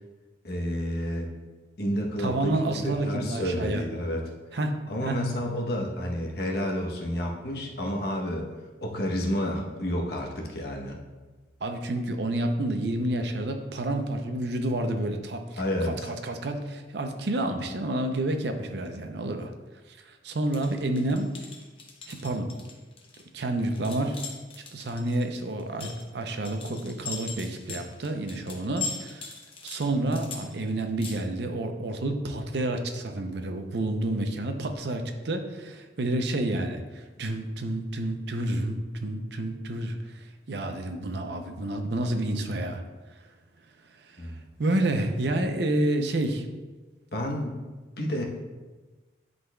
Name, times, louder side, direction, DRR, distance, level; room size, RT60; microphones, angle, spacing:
voice 1, 0.4-1.3 1.8-4.3 4.9-8.5 8.8-11.0 15.6-16.1 44.2-44.4 47.1-47.6 48.0-48.2, equal, 60° left, 0 dB, 0.9 m, -30 dB
voice 2, 2.2-3.8 4.5-4.8 5.0-5.2 11.6-19.5 19.9-21.3 22.1-22.5 23.3-24.2 24.7-29.3 29.6-42.8 44.0-44.2 44.6-46.5, right 1 dB, 65° right, 6 dB, 0.6 m, -29 dB
sound 1, 20.5-31.2, left 5 dB, 30° left, 0.7 m, -40 dB
11.0 x 4.0 x 2.3 m, 1.3 s
head